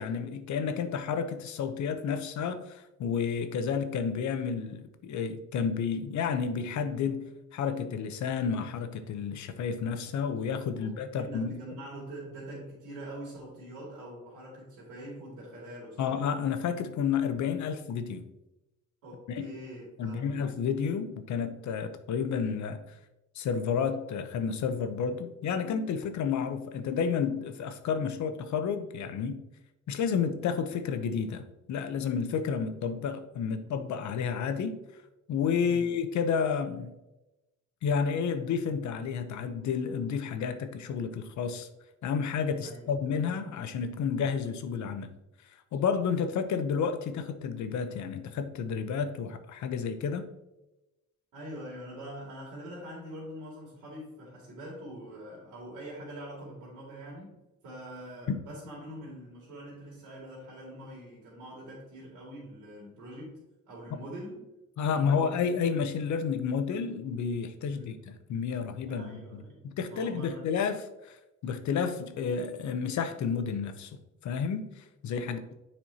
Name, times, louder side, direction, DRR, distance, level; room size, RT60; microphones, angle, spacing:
voice 1, 0.0-11.6 16.0-18.3 19.3-19.5 20.0-22.8 23.3-29.4 29.9-31.4 31.7-34.8 35.3-36.9 37.8-41.7 42.0-45.1 45.7-50.3 64.8-71.2 71.4-74.0 74.2-75.5, left 6 dB, 70° left, 10 dB, 0.8 m, -31 dB
voice 2, 10.8-16.3 19.0-20.4 35.6-35.9 42.6-43.0 51.3-57.4 57.6-63.4 63.7-64.4 64.9-65.5 67.7-67.9 68.9-70.5 75.2-75.4, right 1 dB, 85° right, -5 dB, 2.6 m, -44 dB
7.5 x 4.4 x 4.2 m, 0.96 s
cardioid pair, 90°, 30 cm